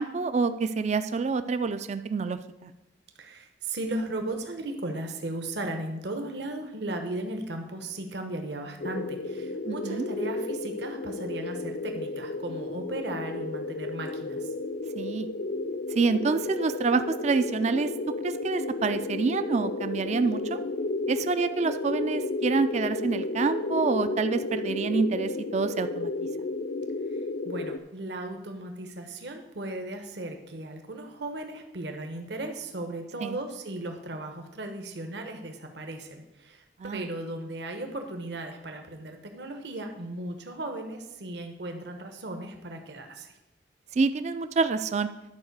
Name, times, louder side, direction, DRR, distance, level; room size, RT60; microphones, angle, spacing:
voice 1, 0.0-2.7 9.7-10.1 15.0-15.3 15.9-17.9 18.2-20.6 21.1-26.1 33.2-33.4 36.8-37.1 44.0-45.1, right 4 dB, 35° right, 11 dB, 0.3 m, -27 dB
voice 2, 3.2-14.5 27.1-36.6 36.9-43.3, right 2 dB, 65° right, 4 dB, 1.0 m, -36 dB
sound 1, 8.8-27.8, left 2 dB, 55° left, 0.4 m, -32 dB
10.5 x 4.6 x 6.6 m, 0.99 s
head